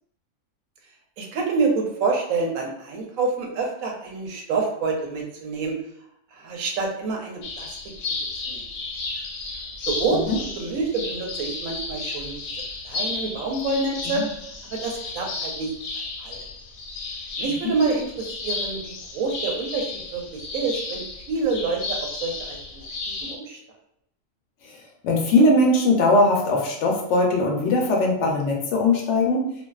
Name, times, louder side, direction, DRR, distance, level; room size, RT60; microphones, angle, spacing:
voice 1, 1.2-5.8 6.3-7.8 8.5-8.6 9.9-12.3 12.8-14.3 14.7-15.7 16.2-16.4 17.4-22.9 23.2-23.6, right 4 dB, 90° right, 1 dB, 1.0 m, -27 dB
sound 1, 7.4-23.3, left 3 dB, 90° left, 1.0 m, -33 dB
voice 2, 25.0-29.5, left 2 dB, 70° left, 0 dB, 0.8 m, -20 dB
2.5 x 2.3 x 2.2 m, 0.75 s
omnidirectional pair, 1.4 m